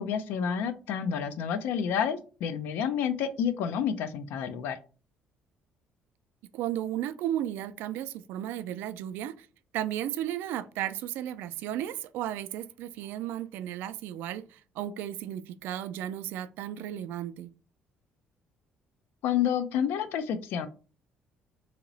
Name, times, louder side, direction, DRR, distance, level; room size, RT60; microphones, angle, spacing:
voice 1, 0.0-4.8 19.2-20.7, left 8 dB, 80° left, 0.5 m, -29 dB
voice 2, 6.5-9.5 9.7-17.5, right 11 dB, 85° right, 0.3 m, -34 dB
3.0 x 2.9 x 3.9 m
cardioid pair, 160°, 3 cm